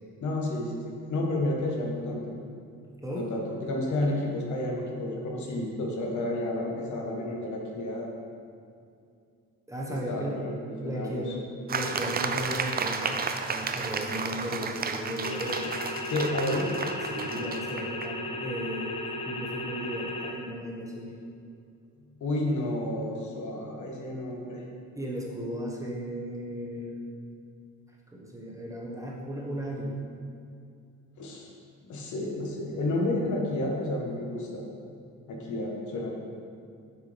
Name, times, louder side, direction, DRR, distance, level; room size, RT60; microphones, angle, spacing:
voice 1, 0.2-2.3 3.1-8.1 9.9-11.3 16.1-16.7 22.2-24.6 31.2-31.5 31.9-34.6 35.3-36.1, left 1 dB, 75° left, -1 dB, 1.3 m, -31 dB
voice 2, 9.7-10.4 10.8-11.4 11.7-15.8 17.0-19.0 19.2-21.1 24.9-27.0 28.1-30.0, equal, 10° right, -3 dB, 1.3 m, -35 dB
sound 1, 11.7-18.1, right 5 dB, 30° right, 0.5 m, -32 dB
sound 2, 15.2-20.3, left 2 dB, 20° left, 0.8 m, -35 dB
7.8 x 5.9 x 3.4 m, 2.4 s
cardioid pair, 90°, 30 cm